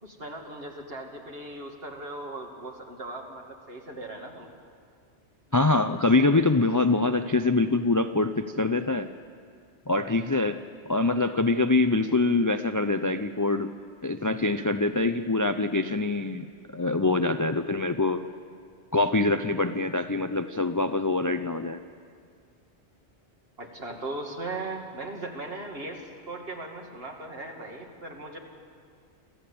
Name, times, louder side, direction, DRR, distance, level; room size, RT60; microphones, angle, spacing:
voice 1, 0.0-4.5 11.1-11.2 23.6-28.4, right 2 dB, 60° right, 1 dB, 2.6 m, -38 dB
voice 2, 5.5-9.1 9.9-10.6 10.9-13.7 14.0-16.5 16.7-18.2 18.9-21.8, left 3 dB, 25° left, 9 dB, 0.4 m, -24 dB
26.5 x 14.5 x 8.6 m, 2.2 s
omnidirectional pair, 1.1 m